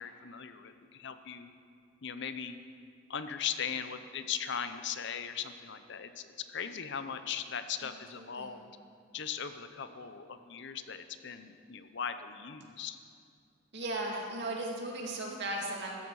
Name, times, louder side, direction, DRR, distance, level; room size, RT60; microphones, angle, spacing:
voice 1, 0.0-1.5 2.0-2.6 3.1-8.7 9.1-13.0, left 7 dB, 55° left, 10 dB, 0.7 m, -39 dB
voice 2, 8.2-8.5 13.7-15.9, right 2 dB, 55° right, -1 dB, 2.3 m, -36 dB
15.0 x 13.5 x 4.8 m, 2.3 s
head